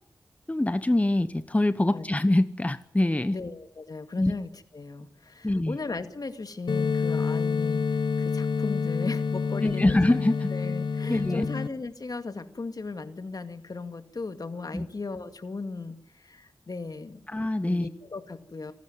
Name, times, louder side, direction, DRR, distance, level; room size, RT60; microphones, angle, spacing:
voice 1, 0.5-3.3 4.2-4.3 5.4-5.8 9.6-10.5 11.1-11.5 14.7-14.9 17.3-17.9, left 1 dB, 20° left, 13 dB, 0.9 m, -24 dB
voice 2, 3.3-10.0 10.5-17.2 17.7-18.7, left 3 dB, 60° left, 9 dB, 2.1 m, -37 dB
sound 1, 6.7-11.7, left 5 dB, 90° left, 1.2 m, -28 dB
26.0 x 12.5 x 9.5 m, 0.66 s
cardioid pair, 50°, 7 cm